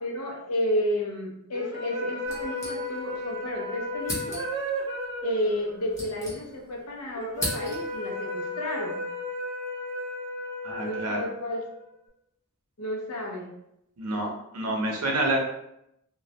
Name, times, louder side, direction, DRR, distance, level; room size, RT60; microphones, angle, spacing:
voice 1, 0.0-4.4 5.2-9.0 10.8-11.7 12.8-13.5, left 1 dB, 75° left, 0 dB, 0.6 m, -31 dB
sound 1, 1.5-11.9, left 1 dB, 20° right, 0.4 m, -35 dB
sound 2, 2.2-3.3 3.5-3.6 4.0-4.7 5.5-6.8 7.1-8.1, left 1 dB, 15° left, 0.7 m, -36 dB
voice 2, 10.6-11.2 14.0-15.4, right 1 dB, 90° right, 0 dB, 0.6 m, -28 dB
2.2 x 2.1 x 2.8 m, 0.80 s
head